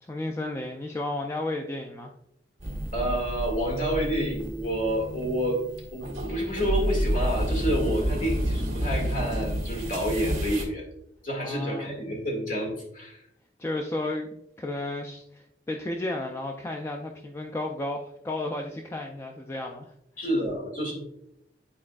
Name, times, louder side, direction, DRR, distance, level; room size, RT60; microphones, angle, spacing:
voice 1, 0.1-2.1 11.4-11.9 13.6-14.3 14.6-19.9, left 2 dB, 15° left, 2 dB, 0.3 m, -33 dB
sound 1, 2.6-10.6, equal, 40° right, 1.7 m, -30 dB
voice 2, 2.9-5.6 5.9-10.9 11.2-13.2 20.2-20.9, equal, 45° left, 0 dB, 1.9 m, -29 dB
9.7 x 4.2 x 2.4 m, 0.79 s
head